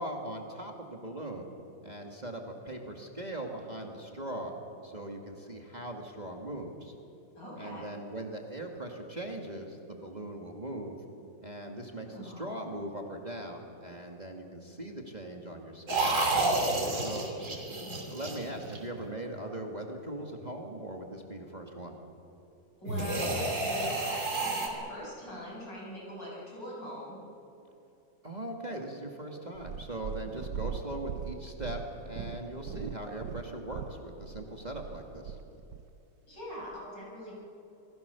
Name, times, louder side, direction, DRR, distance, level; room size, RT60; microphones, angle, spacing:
voice 1, 0.0-1.5 1.8-4.6 4.8-6.9 7.6-11.0 11.4-16.3 16.9-17.3 18.1-21.9 28.2-35.4, right 1 dB, 25° right, 1 dB, 2.0 m, -40 dB
voice 2, 7.4-7.9 11.8-12.5 16.8-17.6 22.8-27.2 36.3-37.3, equal, 70° left, -4 dB, 7.8 m, -43 dB
sound 1, 15.9-19.1 22.9-24.7, right 2 dB, 40° right, 3.4 m, -30 dB
Purr, 29.5-35.9 36.6-36.7, right 7 dB, 65° right, 1.2 m, -40 dB
27.5 x 20.0 x 6.9 m, 2.9 s
omnidirectional pair, 2.0 m